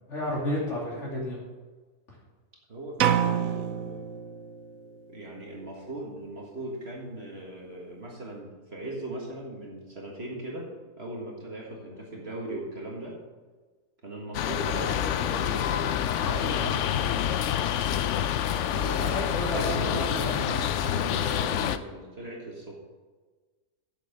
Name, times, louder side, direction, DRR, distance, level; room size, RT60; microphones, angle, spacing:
voice 1, 0.1-1.4 18.8-20.8, left 1 dB, 45° left, -4 dB, 3.0 m, -32 dB
voice 2, 2.7-4.1 5.1-10.7 11.0-13.2 14.0-16.9 18.7-19.2 19.5-22.7, right 1 dB, 40° right, -2 dB, 1.9 m, -38 dB
sound 1, 3.0-4.9, right 9 dB, 65° right, 1.0 m, -27 dB
sound 2, 14.3-21.8, left 10 dB, 70° left, 0.7 m, -27 dB
8.4 x 7.2 x 6.8 m, 1.4 s
omnidirectional pair, 1.7 m